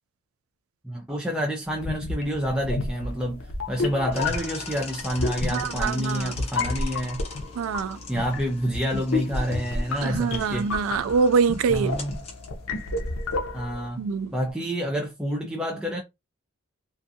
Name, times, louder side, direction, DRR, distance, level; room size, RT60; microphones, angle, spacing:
voice 1, 0.8-7.2 8.1-10.7 11.7-12.2 13.5-14.0 14.3-16.0, equal, 5° right, 0.4 m, -28 dB
sound 1, 1.7-13.9, left 3 dB, 80° left, 0.6 m, -31 dB
sound 2, 4.1-14.5, left 4 dB, 30° left, 0.7 m, -43 dB
voice 2, 5.5-6.3 7.6-8.0 10.0-12.0 14.0-14.3, right 5 dB, 85° right, 0.3 m, -24 dB
2.5 x 2.3 x 2.6 m
head